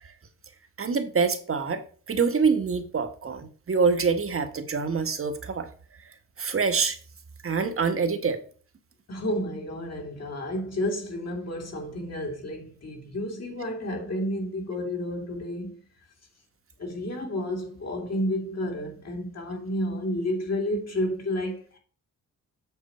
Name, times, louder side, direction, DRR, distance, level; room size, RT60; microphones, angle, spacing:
voice 1, 0.8-1.8 2.1-5.7 6.4-7.0 7.4-8.4, right 5 dB, 40° right, 1.5 m, -25 dB
voice 2, 9.1-15.8 16.8-21.8, left 1 dB, 50° left, 2.9 m, -31 dB
8.1 x 6.0 x 4.3 m
cardioid pair, 90°, 33 cm